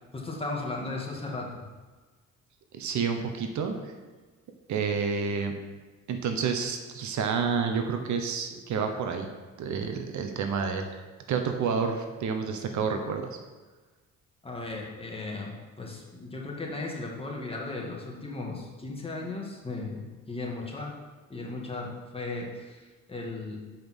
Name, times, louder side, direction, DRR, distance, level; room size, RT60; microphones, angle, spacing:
voice 1, 0.1-1.7 14.4-20.9 21.3-23.6, left 2 dB, 20° left, -2 dB, 2.2 m, -36 dB
voice 2, 2.7-3.9 4.7-5.5 6.1-9.3 9.6-10.9 11.3-13.3, right 5 dB, 70° right, 5 dB, 1.1 m, -29 dB
7.7 x 5.4 x 6.2 m, 1.3 s
cardioid pair, 90°, 30 cm